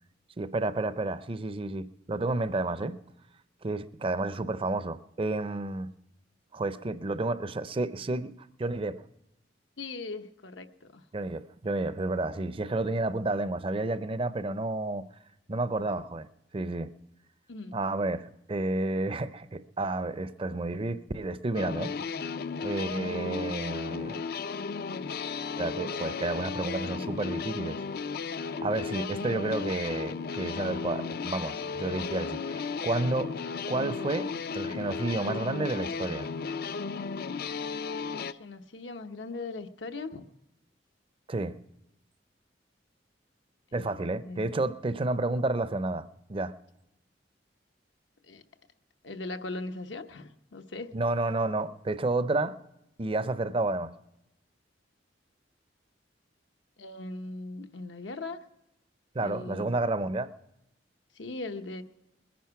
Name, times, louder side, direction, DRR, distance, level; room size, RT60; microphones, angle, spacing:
voice 1, 0.4-3.0 3.6-5.9 6.5-8.3 8.6-9.0 11.1-15.1 15.5-16.3 16.5-16.9 17.7-21.9 22.6-24.2 25.6-27.8 28.4-36.3 41.3-41.6 43.7-46.5 50.9-52.6 53.0-53.9 59.1-60.3, right 2 dB, 30° right, 0.5 m, -31 dB
voice 2, 9.8-11.0 17.5-17.8 22.8-23.1 38.2-40.3 43.7-44.5 48.2-48.4 49.0-51.0 56.8-58.4 59.2-59.7 61.1-61.8, left 3 dB, 90° left, 0.9 m, -39 dB
sound 1, 21.5-38.3, left 5 dB, 55° left, 0.4 m, -35 dB
21.5 x 10.5 x 4.7 m
head